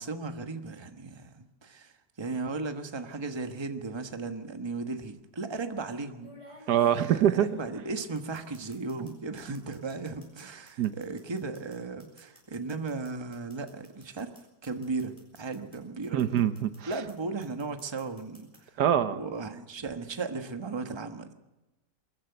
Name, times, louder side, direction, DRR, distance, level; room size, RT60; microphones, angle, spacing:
voice 1, 0.0-14.3 14.6-16.3 16.9-18.8 19.1-21.3, right 3 dB, 20° right, 7 dB, 1.1 m, -36 dB
sound 1, 3.0-3.3 4.5-4.6 6.2-9.1 9.4-15.8 16.0-17.1 17.4-18.6, left 1 dB, 15° left, 6.6 m, -55 dB
voice 2, 6.7-7.5 10.8-10.9 16.1-16.9 18.8-19.2, right 10 dB, 75° right, 12 dB, 1.4 m, -24 dB
23.5 x 14.0 x 8.0 m, 1.1 s
omnidirectional pair, 1.8 m